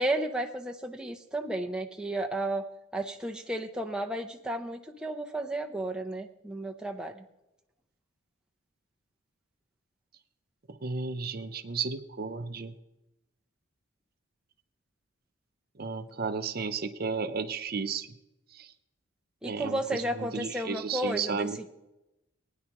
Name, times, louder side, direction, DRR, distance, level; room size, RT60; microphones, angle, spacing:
voice 1, 0.0-2.7 2.9-7.3 19.4-21.7, right 1 dB, 5° right, 2 dB, 0.6 m, -33 dB
voice 2, 10.7-12.7 15.8-18.1 18.5-18.7 19.4-21.6, right 5 dB, 45° right, 10 dB, 0.6 m, -33 dB
19.5 x 9.7 x 3.0 m, 0.93 s
head